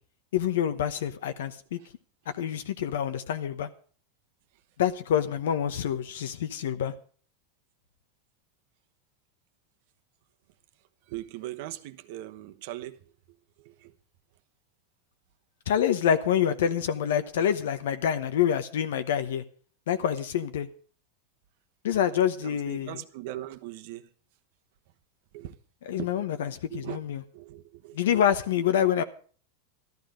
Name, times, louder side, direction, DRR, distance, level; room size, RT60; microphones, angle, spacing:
voice 1, 0.3-1.8 2.4-3.7 4.8-6.9 15.7-19.4 19.9-20.7 21.8-23.0 25.8-27.2 27.9-29.0, left 9 dB, 85° left, 1.0 m, -26 dB
voice 2, 11.1-13.0 13.6-13.9 22.4-24.0 25.3-25.5 26.0-26.1 26.7-27.0 27.3-28.0, right 14 dB, 60° right, 1.1 m, -39 dB
13.5 x 12.0 x 5.1 m
supercardioid pair, 140°, 0 cm